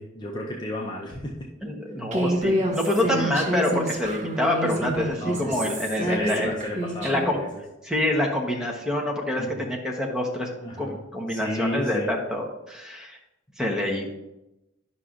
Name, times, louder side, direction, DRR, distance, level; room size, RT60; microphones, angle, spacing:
voice 1, 0.0-1.5 3.0-3.2 4.7-7.6 9.4-9.7 10.6-11.0 11.3-12.2, equal, 20° left, -1 dB, 0.7 m, -33 dB
voice 2, 1.6-6.6 7.0-7.4 7.8-10.5 10.8-13.2 13.6-14.1, left 1 dB, 5° right, -1 dB, 1.0 m, -26 dB
Human voice, 2.1-7.3, right 1 dB, 40° right, 1.2 m, -28 dB
11.0 x 5.7 x 2.5 m, 0.95 s
head